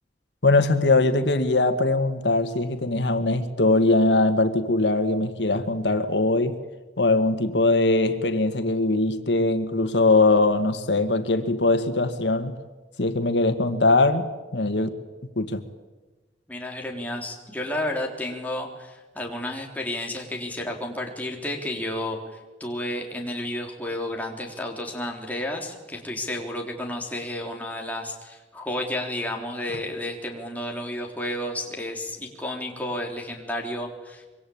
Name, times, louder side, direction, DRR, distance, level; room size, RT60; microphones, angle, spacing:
voice 1, 0.4-6.6 7.0-12.6 13.0-14.9 15.4-15.6, left 2 dB, 90° left, 1.8 m, -21 dB
voice 2, 16.5-22.2 22.6-34.3, left 1 dB, 10° left, 3.8 m, -31 dB
25.5 x 23.5 x 8.8 m
head